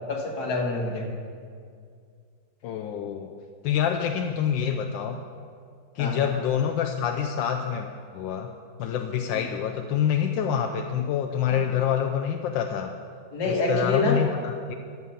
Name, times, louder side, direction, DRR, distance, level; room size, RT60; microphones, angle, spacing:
voice 1, 0.1-1.1 6.0-6.3 9.3-9.4 13.3-14.2, left 3 dB, 60° left, 0 dB, 2.0 m, -26 dB
voice 2, 2.6-3.3 3.6-5.2 5.9-8.5 8.8-12.9 13.4-14.7, left 8 dB, 85° left, 4 dB, 1.3 m, -26 dB
13.5 x 7.8 x 5.7 m, 2.2 s
omnidirectional pair, 2.0 m